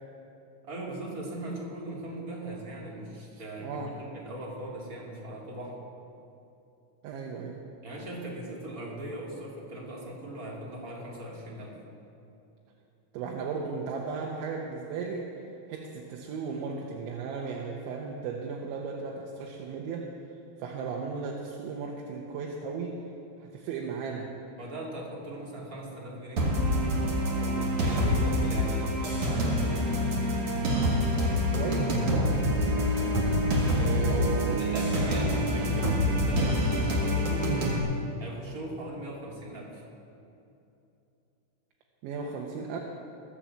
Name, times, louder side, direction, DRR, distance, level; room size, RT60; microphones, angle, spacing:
voice 1, 0.6-5.8 7.8-11.8 24.6-26.5 27.4-29.8 34.0-37.7 38.2-39.8, right 1 dB, 25° right, -4 dB, 2.1 m, -39 dB
voice 2, 3.3-3.9 7.0-7.6 13.1-15.3 15.7-20.1 20.6-23.0 23.5-24.4 31.3-33.0 33.7-34.9 42.0-42.8, right 5 dB, 85° right, -1 dB, 3.4 m, -36 dB
sound 1, 26.4-37.8, equal, 55° right, 1.6 m, -26 dB
20.5 x 7.5 x 7.4 m, 2.7 s
omnidirectional pair, 5.2 m